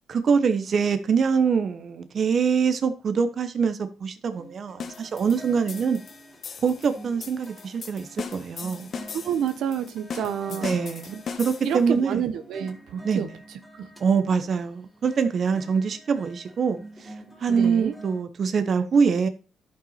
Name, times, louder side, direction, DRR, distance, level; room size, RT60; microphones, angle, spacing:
voice 1, 0.1-6.0 6.6-8.9 10.5-12.2 13.0-13.3 14.0-17.1 17.4-19.3, right 6 dB, 50° right, 1.0 m, -24 dB
sound 1, 4.3-18.2, right 1 dB, 10° right, 3.4 m, -48 dB
sound 2, 4.8-11.9, left 6 dB, 50° left, 1.3 m, -39 dB
voice 2, 9.1-10.8 11.1-11.2 11.6-13.3 13.8-13.9 17.5-17.9, right 8 dB, 80° right, 1.0 m, -29 dB
12.0 x 5.7 x 4.3 m
cardioid pair, 90°, 0 cm